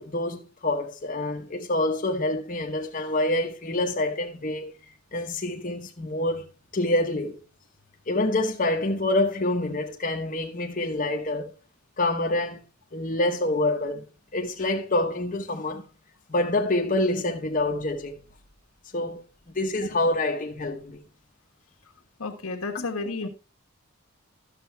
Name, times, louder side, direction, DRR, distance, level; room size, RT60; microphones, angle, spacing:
voice 1, 0.0-4.7 5.1-6.4 6.7-7.4 8.1-11.5 12.0-12.6 12.9-14.0 14.3-15.8 16.3-18.2 18.9-21.0 22.7-22.8, left 2 dB, 40° left, 0.9 m, -26 dB
voice 2, 22.2-23.3, left 3 dB, 80° left, 1.4 m, -31 dB
11.5 x 6.9 x 3.3 m
head